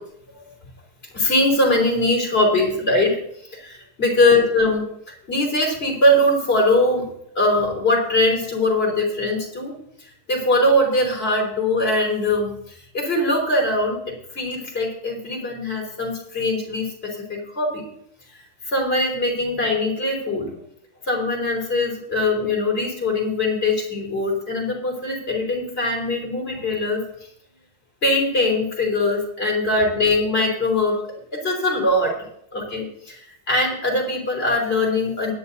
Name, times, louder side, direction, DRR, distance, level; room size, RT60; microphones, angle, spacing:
voice 1, 1.1-3.2 3.5-4.9 5.3-7.1 7.3-9.7 10.3-12.5 12.9-14.0 14.3-17.8 18.7-20.5 21.1-27.0 28.0-31.0 31.3-32.1 32.5-35.3, left 1 dB, 25° left, -2 dB, 4.5 m, -21 dB
24.0 x 10.0 x 2.8 m, 0.70 s
omnidirectional pair, 2.2 m